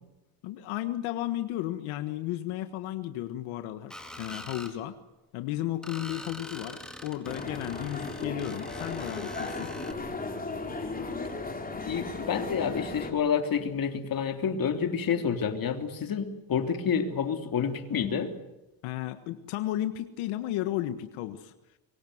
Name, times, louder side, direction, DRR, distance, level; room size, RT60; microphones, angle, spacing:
voice 1, 0.4-4.9 5.3-9.7 18.8-21.5, left 13 dB, 85° left, 9 dB, 1.7 m, -34 dB
Screech, 3.9-4.7 5.8-9.9, left 1 dB, ahead, 4.2 m, -44 dB
sound 1, 7.2-13.1, left 3 dB, 20° left, 4.4 m, -36 dB
voice 2, 11.8-18.3, left 7 dB, 45° left, 6 dB, 3.3 m, -29 dB
26.0 x 24.0 x 8.0 m, 1.0 s
cardioid pair, 105°, 47 cm